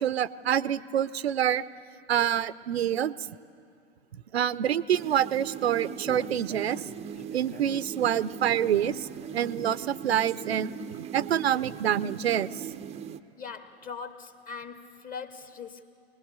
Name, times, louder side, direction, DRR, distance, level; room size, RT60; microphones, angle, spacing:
voice 1, 0.0-1.6 2.1-3.1 4.3-6.8 7.3-10.7 11.1-12.7, right 10 dB, 75° right, 17 dB, 0.6 m, -26 dB
sound 1, 4.9-13.2, right 8 dB, 20° right, 0.6 m, -40 dB
Human voice, 5.6-9.6 10.0-10.1 10.6-10.7, left 3 dB, 80° left, 1.4 m, -48 dB
voice 2, 13.4-15.8, left 5 dB, 25° left, 8 dB, 1.5 m, -41 dB
23.5 x 20.0 x 6.8 m, 2.4 s
figure-of-eight pair, 95°, 32 cm